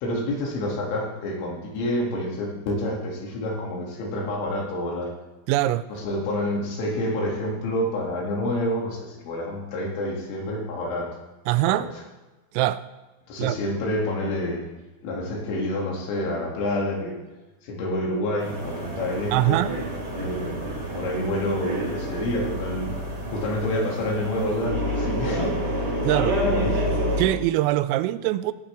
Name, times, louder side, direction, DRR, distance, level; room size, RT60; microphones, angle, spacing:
voice 1, 0.0-5.1 5.9-11.2 11.7-11.9 13.3-14.6 15.0-17.2 17.6-19.6 20.1-20.7 20.9-22.9 23.3-26.0 26.2-27.1, left 1 dB, 75° left, 4.8 m, -28 dB
voice 2, 5.5-5.8 11.5-11.9 12.5-12.8 13.4-13.6 19.3-19.7 26.0-26.4 27.2-28.5, right 15 dB, 85° right, 3.2 m, -22 dB
sound 1, 18.4-27.2, equal, 30° right, 2.9 m, -29 dB
16.5 x 11.0 x 3.4 m
omnidirectional pair, 5.8 m